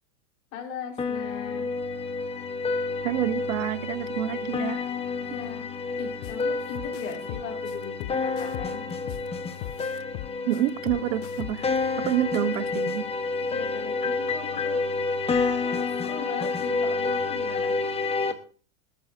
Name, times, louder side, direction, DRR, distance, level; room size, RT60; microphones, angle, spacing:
voice 1, 0.5-1.7 5.2-5.6 6.0-8.8 13.5-14.8 15.4-17.7, left 6 dB, 90° left, 5.3 m, -39 dB
sound 1, 1.0-18.3, left 4 dB, 15° left, 1.1 m, -29 dB
voice 2, 3.0-4.8 10.4-11.7 12.0-13.1, right 12 dB, 70° right, 1.2 m, -27 dB
sound 2, 6.2-6.4 6.7-9.3 9.6-11.8, left 17 dB, 55° left, 0.6 m, -38 dB
20.5 x 13.5 x 2.6 m
supercardioid pair, 140°, 41 cm